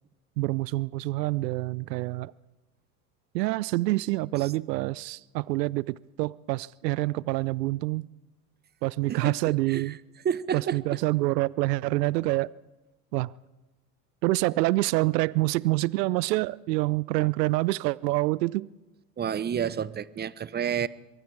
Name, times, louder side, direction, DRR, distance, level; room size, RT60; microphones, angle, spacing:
voice 1, 0.4-2.3 3.3-8.1 8.8-10.0 10.5-12.5 13.1-13.3 14.2-18.7, right 19 dB, 80° right, 0.6 m, -26 dB
voice 2, 10.2-10.8 19.2-20.9, right 8 dB, 20° right, 0.8 m, -29 dB
24.5 x 23.0 x 4.8 m
hypercardioid pair, 90°, 48 cm